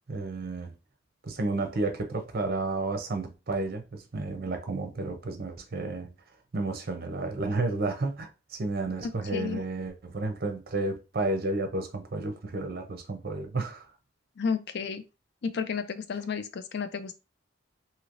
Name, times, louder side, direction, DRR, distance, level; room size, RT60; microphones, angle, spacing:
voice 1, 0.1-0.7 1.2-6.1 6.5-13.9, right 2 dB, 55° right, 0.6 m, -31 dB
voice 2, 9.0-9.6 14.4-15.0 15.4-17.1, left 5 dB, 60° left, 0.4 m, -32 dB
3.1 x 2.8 x 2.5 m
head